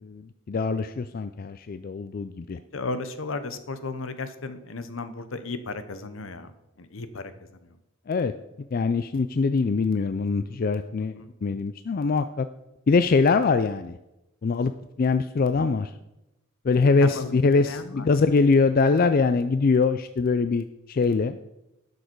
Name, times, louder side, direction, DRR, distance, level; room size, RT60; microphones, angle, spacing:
voice 1, 0.0-2.6 8.1-8.3 8.7-12.5 12.9-13.9 14.4-14.7 15.0-15.9 16.7-21.4, left 4 dB, 45° left, 11 dB, 0.3 m, -23 dB
voice 2, 2.7-7.8 11.2-11.3 17.0-17.3 17.6-18.1, left 3 dB, 70° left, 11 dB, 0.9 m, -34 dB
11.5 x 6.5 x 4.5 m, 0.92 s
head